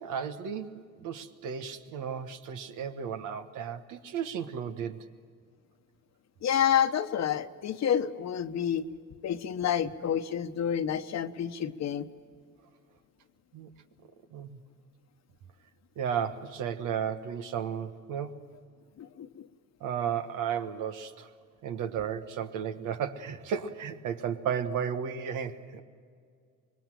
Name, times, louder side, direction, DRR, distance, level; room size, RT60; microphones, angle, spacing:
voice 1, 0.0-5.1 13.5-13.7 14.3-14.6 16.0-18.4 19.8-21.3 21.6-25.8, right 7 dB, 90° right, 8 dB, 1.4 m, -34 dB
voice 2, 6.4-8.9 9.2-12.1 19.0-19.5, left 9 dB, 60° left, 10 dB, 1.1 m, -29 dB
25.5 x 21.0 x 7.6 m, 2.1 s
cardioid pair, 90°, 30 cm